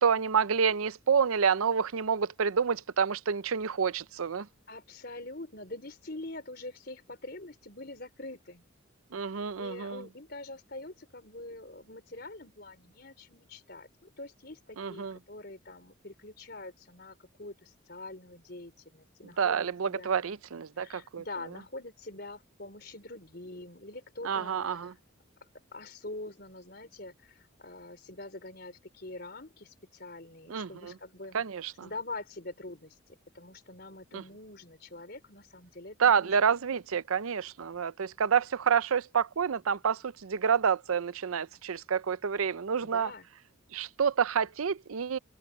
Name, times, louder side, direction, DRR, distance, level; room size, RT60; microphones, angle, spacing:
voice 1, 0.0-4.5 9.1-10.0 14.8-15.2 19.4-21.2 24.2-24.9 30.5-30.9 31.3-31.9 34.1-34.2 36.0-43.1 43.7-45.2, right 6 dB, 90° right, 0.6 m, -28 dB
voice 2, 4.7-8.6 9.6-20.2 20.8-25.0 25.7-31.4 31.8-36.4 42.8-43.3, left 2 dB, 50° left, 4.2 m, -44 dB
head